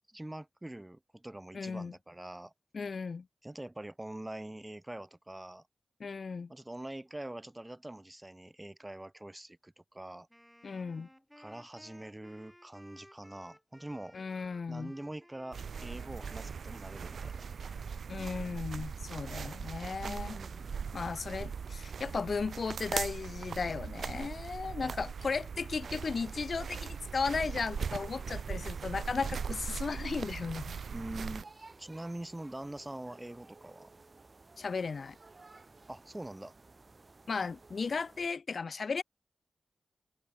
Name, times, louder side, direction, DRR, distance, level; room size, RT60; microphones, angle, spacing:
voice 1, 0.1-2.5 3.4-5.7 6.5-10.3 11.4-14.2 14.7-17.5 20.0-20.8 24.8-25.1 30.9-31.5 31.8-33.9 35.9-36.5, right 1 dB, 15° right, 0.3 m, -44 dB
voice 2, 1.5-1.9 2.7-3.3 6.0-6.5 10.6-11.1 14.1-14.9 18.1-20.4 20.9-30.8 34.6-35.2 37.3-39.0, left 5 dB, 65° left, 0.4 m, -35 dB
Wind instrument woodwind instrument, 10.3-18.7, equal, 5° left, 3.8 m, -59 dB
sound 1, 15.5-31.4, right 6 dB, 85° right, 0.6 m, -40 dB
sound 2, 25.8-38.3, right 3 dB, 45° right, 5.4 m, -57 dB
cardioid pair, 60°, 0 cm